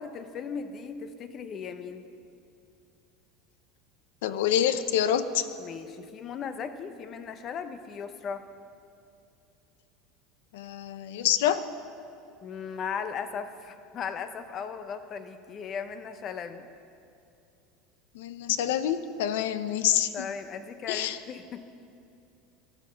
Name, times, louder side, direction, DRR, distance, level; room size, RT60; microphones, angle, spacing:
voice 1, 0.0-2.1 5.6-8.4 12.4-16.7 20.1-21.7, left 6 dB, 30° left, 10 dB, 0.7 m, -37 dB
voice 2, 4.2-5.5 10.5-11.6 18.1-20.3 20.9-21.2, left 10 dB, 85° left, 12 dB, 0.7 m, -27 dB
14.5 x 12.0 x 5.8 m, 2.6 s
supercardioid pair, 155°, 0 cm